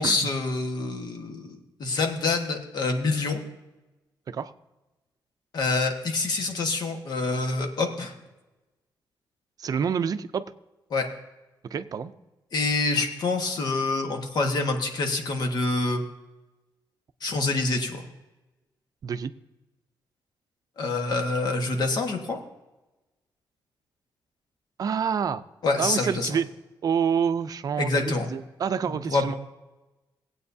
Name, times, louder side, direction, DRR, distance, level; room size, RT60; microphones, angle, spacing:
voice 1, 0.0-3.4 5.5-8.1 10.9-11.1 12.5-16.0 17.2-18.1 20.8-22.4 25.6-26.3 27.8-28.3 29.1-29.3, left 3 dB, 60° left, 4 dB, 1.4 m, -26 dB
voice 2, 9.6-10.5 11.7-12.1 19.0-19.3 24.8-25.4 25.8-26.5 26.8-29.3, right 7 dB, 50° right, 12 dB, 0.5 m, -27 dB
18.5 x 8.6 x 2.7 m, 1.0 s
wide cardioid pair, 145°, 8 cm